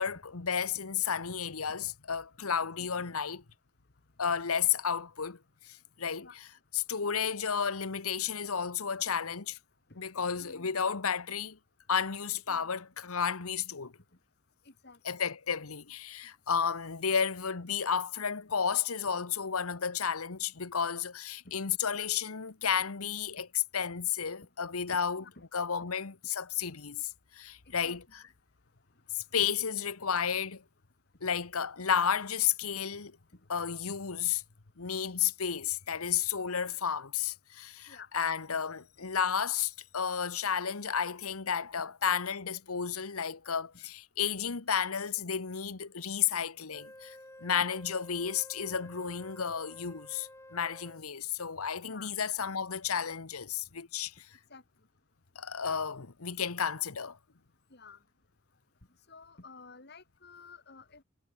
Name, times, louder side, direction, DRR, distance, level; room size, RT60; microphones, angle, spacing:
voice 1, 0.0-3.4 4.2-5.4 5.6-6.3 6.7-9.6 10.0-11.6 11.9-13.9 15.0-23.5 23.7-25.2 25.5-28.2 29.1-30.6 31.2-33.1 33.5-34.4 34.8-54.1 55.3-57.2, left 7 dB, 85° left, 1.2 m, -32 dB
voice 2, 2.8-3.1 6.2-6.4 9.9-10.0 10.4-10.8 12.5-12.7 14.7-15.2 21.4-21.6 23.4-23.5 25.2-25.5 27.8-28.0 29.4-29.5 37.9-38.1 47.6-47.7 51.8-52.1 54.5-54.6 57.7-58.0 59.1-61.0, left 4 dB, 50° left, 2.2 m, -52 dB
Wind instrument woodwind instrument, 46.7-51.1, left 1 dB, 15° left, 5.6 m, -51 dB
head